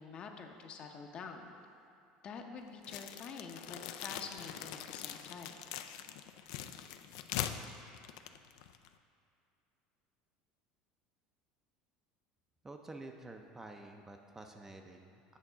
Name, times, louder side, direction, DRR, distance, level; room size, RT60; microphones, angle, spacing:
voice 1, 0.0-1.5 2.2-5.6, left 5 dB, 40° left, 4 dB, 0.7 m, -47 dB
sound 1, 2.8-8.9, left 10 dB, 80° left, 0.3 m, -42 dB
voice 2, 12.6-15.4, right 2 dB, 15° right, 3 dB, 0.4 m, -50 dB
8.4 x 3.6 x 6.6 m, 2.5 s
cardioid pair, 130°, 3 cm